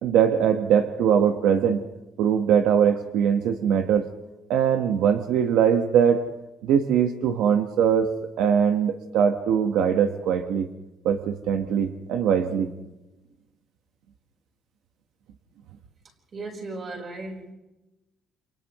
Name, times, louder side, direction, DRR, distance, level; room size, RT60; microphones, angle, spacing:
voice 1, 0.0-1.8 2.2-4.1 4.5-6.2 6.6-8.1 8.4-10.7 11.0-12.7, right 8 dB, 85° right, 6 dB, 1.4 m, -21 dB
voice 2, 16.3-17.5, right 2 dB, 30° right, 1 dB, 4.5 m, -36 dB
29.5 x 28.0 x 3.1 m, 1.0 s
cardioid pair, 175°, 0 cm